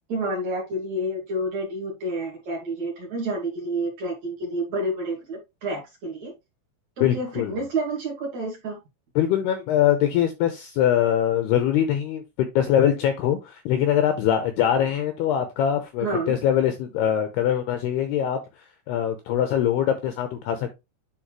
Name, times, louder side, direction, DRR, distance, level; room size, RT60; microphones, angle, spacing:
voice 1, 0.1-6.3 7.0-8.8 14.7-14.8 16.0-16.4, right 1 dB, 50° right, -2 dB, 2.5 m, -29 dB
voice 2, 7.0-7.6 9.2-18.4 18.9-20.7, left 10 dB, 90° left, 7 dB, 2.3 m, -23 dB
10.5 x 4.0 x 3.1 m, 0.23 s
omnidirectional pair, 5.6 m